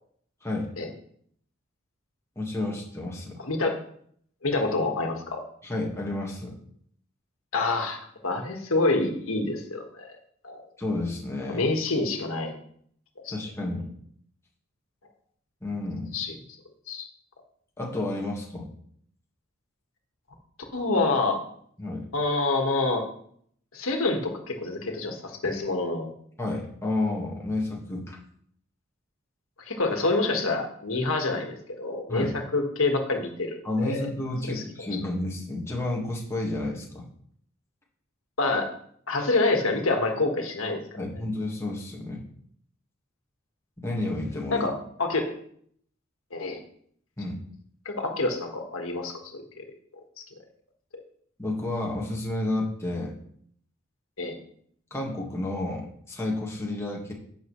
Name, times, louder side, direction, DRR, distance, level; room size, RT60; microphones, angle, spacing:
voice 1, 0.4-0.7 2.3-3.4 5.6-6.6 10.8-11.7 13.3-13.9 15.6-16.2 17.8-18.7 21.8-22.0 26.4-28.2 32.1-32.3 33.6-37.1 41.0-42.2 43.8-44.7 47.2-47.4 51.4-53.1 54.9-57.1, left 2 dB, 15° left, -2 dB, 1.6 m, -31 dB
voice 2, 3.4-3.8 4.4-5.4 7.5-10.1 10.4-10.6 11.5-12.6 13.2-13.3 16.1-16.3 16.9-17.1 20.7-21.4 22.1-23.0 23.7-26.1 29.7-32.3 32.5-34.1 34.4-34.9 38.4-38.7 39.1-40.8 44.5-44.7 45.0-45.3 46.3-46.6 47.8-49.6 54.2-54.4, left 3 dB, 90° left, 3 dB, 1.6 m, -27 dB
11.0 x 7.2 x 3.2 m, 0.65 s
head